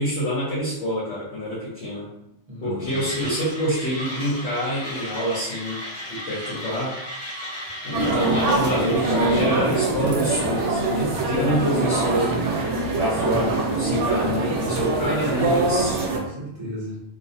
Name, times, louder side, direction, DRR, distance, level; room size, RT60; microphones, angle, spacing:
voice 1, 0.0-2.1 2.6-5.8 6.1-7.0 7.8-12.3 12.9-16.0, equal, 70° left, -8 dB, 1.0 m, -27 dB
voice 2, 2.5-3.3 15.8-17.0, equal, 30° right, -6 dB, 0.6 m, -36 dB
Mechanisms, 2.9-9.4, equal, 45° left, 0.8 m, -35 dB
sound 1, 7.9-16.2, right 2 dB, 75° right, 0.9 m, -23 dB
2.4 x 2.1 x 2.6 m, 0.83 s
omnidirectional pair, 1.2 m